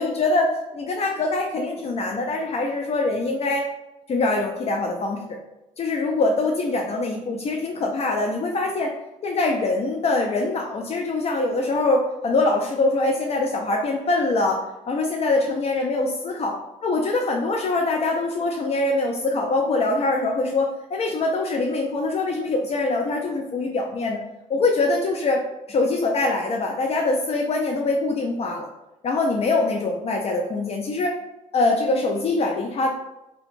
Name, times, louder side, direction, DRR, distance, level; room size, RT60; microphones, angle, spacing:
voice 1, 0.0-3.7 4.1-5.2 5.8-8.9 9.2-16.6 16.8-24.2 24.5-25.4 25.7-28.7 29.0-31.2 31.5-32.9, left 2 dB, 45° left, 1 dB, 0.4 m, -23 dB
2.8 x 2.2 x 2.5 m, 0.93 s
cardioid pair, 80°, 14 cm